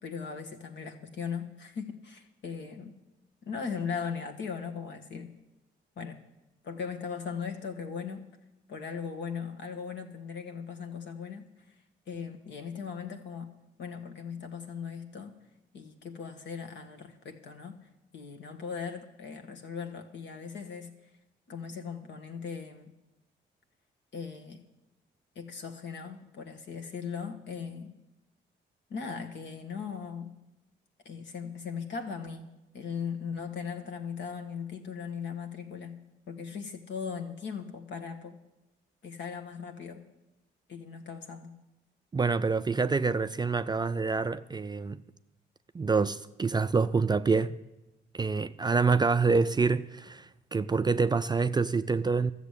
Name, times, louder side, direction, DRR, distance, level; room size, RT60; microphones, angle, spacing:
voice 1, 0.0-2.9 3.4-5.3 6.0-6.2 6.6-8.3 8.7-11.8 12.1-13.5 13.8-15.3 15.7-17.8 18.1-20.9 21.5-22.9 24.1-24.6 25.3-28.0 28.9-30.4 31.0-32.5 32.7-36.0 36.3-38.4 39.0-40.1 40.7-41.5, left 6 dB, 65° left, 1.5 m, -38 dB
voice 2, 42.1-45.0 45.7-47.6 48.1-52.3, right 4 dB, 20° right, 0.4 m, -26 dB
13.5 x 7.1 x 8.2 m
cardioid pair, 90°, 20 cm